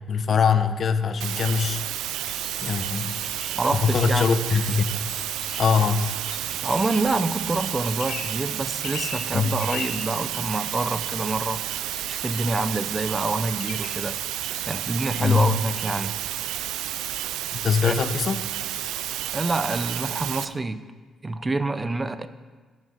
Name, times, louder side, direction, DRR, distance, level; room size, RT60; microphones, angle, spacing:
voice 1, 0.1-1.8 2.6-3.2 3.7-4.9 5.6-6.1 9.3-9.5 15.2-15.6 17.6-18.4, left 6 dB, 50° left, 10 dB, 0.7 m, -22 dB
sound 1, 1.2-20.5, right 12 dB, 90° right, 0.4 m, -31 dB
sound 2, 2.1-2.4 3.3-4.0 5.4-6.4 7.6-8.4 8.8-9.2 9.6-10.0 10.5-11.2 11.9-12.6 13.6-14.6 15.6-16.2, left 6 dB, 85° left, 1.2 m, -40 dB
sound 3, 2.3-9.0, left 1 dB, 25° left, 2.3 m, -45 dB
voice 2, 3.5-4.3 6.6-11.6 12.1-14.2 14.6-16.2 17.8-17.9 19.3-20.8 21.2-22.3, right 2 dB, 20° right, 12 dB, 0.5 m, -27 dB
12.0 x 6.4 x 5.7 m, 1.4 s
cardioid pair, 90°, 0 cm